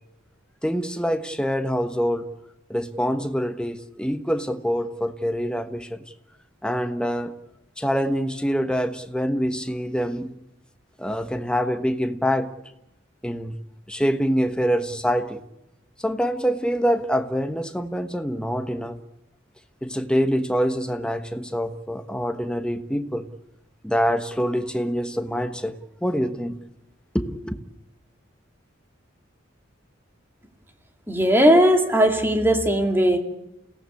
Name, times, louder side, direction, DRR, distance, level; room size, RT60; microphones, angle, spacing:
voice 1, 0.6-2.3 2.7-6.0 6.6-7.3 7.8-10.3 11.0-12.5 13.2-13.5 13.9-15.4 16.0-19.0 19.8-23.3 23.8-26.6 27.1-27.6, equal, 5° left, 1.2 m, -25 dB
voice 2, 31.1-33.2, equal, 10° right, 2.5 m, -18 dB
28.5 x 17.5 x 8.5 m
head